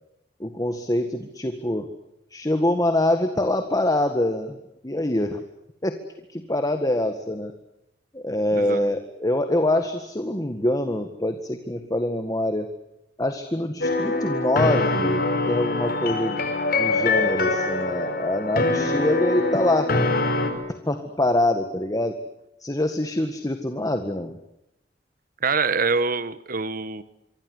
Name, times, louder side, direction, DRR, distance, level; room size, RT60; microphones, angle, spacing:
voice 1, 0.4-1.9 2.3-4.6 4.8-5.4 5.8-6.0 6.3-7.5 8.1-12.7 13.2-16.4 16.8-19.9 20.9-22.2 22.6-24.4, left 1 dB, 20° left, 8 dB, 1.8 m, -25 dB
voice 2, 8.5-8.9 25.4-27.0, right 4 dB, 50° right, 15 dB, 1.4 m, -25 dB
sound 1, 13.8-20.5, left 2 dB, 55° left, 4.8 m, -24 dB
26.0 x 25.0 x 8.0 m, 0.86 s
head